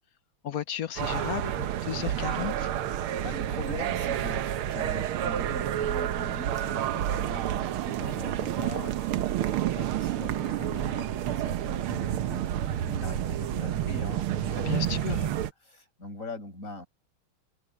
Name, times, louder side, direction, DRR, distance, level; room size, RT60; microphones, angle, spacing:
voice 1, 0.4-2.7 14.6-15.3, left 10 dB, 60° left, 1.0 m, -34 dB
sound 1, 1.0-15.5, right 11 dB, 90° right, 1.8 m, -29 dB
voice 2, 3.0-16.9, left 1 dB, 40° left, 6.4 m, -41 dB
omnidirectional pair, 2.3 m